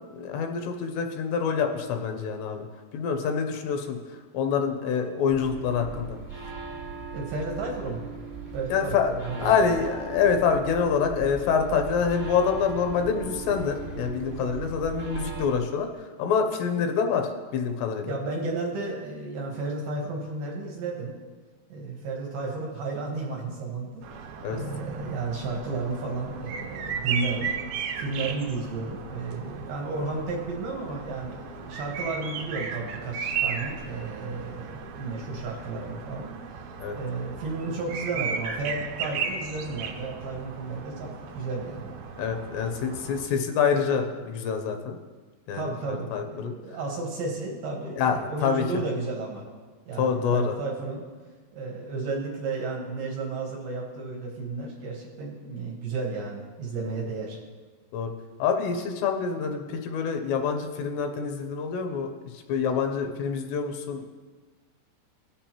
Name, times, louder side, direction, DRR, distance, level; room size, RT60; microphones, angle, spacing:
voice 1, 0.2-2.7 2.9-6.2 8.7-9.1 9.4-18.1 24.4-24.6 36.8-37.0 42.2-45.0 45.5-46.5 48.0-48.6 50.0-50.6 56.8-57.1 57.9-58.1 58.4-64.1, left 6 dB, 80° left, 5 dB, 2.8 m, -26 dB
sound 1, 5.3-15.5, right 4 dB, 40° right, 1.6 m, -38 dB
voice 2, 7.1-8.1 8.5-9.5 18.1-21.1 21.7-24.1 24.5-27.5 28.0-41.9 45.5-49.5 49.9-51.1 51.5-57.4, right 3 dB, 70° right, -1 dB, 2.4 m, -33 dB
sound 2, 24.0-43.3, right 6 dB, 85° right, 2.2 m, -36 dB
17.0 x 7.1 x 2.9 m, 1.4 s
omnidirectional pair, 4.9 m